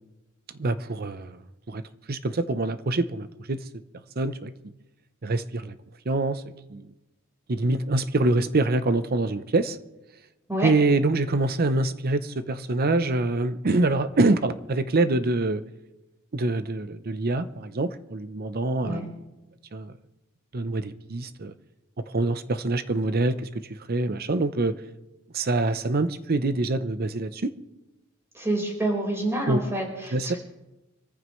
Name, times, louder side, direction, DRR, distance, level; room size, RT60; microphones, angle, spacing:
voice 1, 0.6-1.4 1.7-1.8 2.1-3.6 4.2-4.5 5.2-5.8 6.1-6.4 6.7-6.9 7.5-9.8 10.6-15.6 16.3-19.1 19.7-19.9 20.5-21.5 22.1-24.7 25.3-27.5 29.5-29.6 30.1-30.3, right 2 dB, 45° right, 12 dB, 0.7 m, -25 dB
voice 2, 28.3-30.4, right 1 dB, 15° right, -1 dB, 4.5 m, -28 dB
25.5 x 14.5 x 3.2 m, 1.0 s
head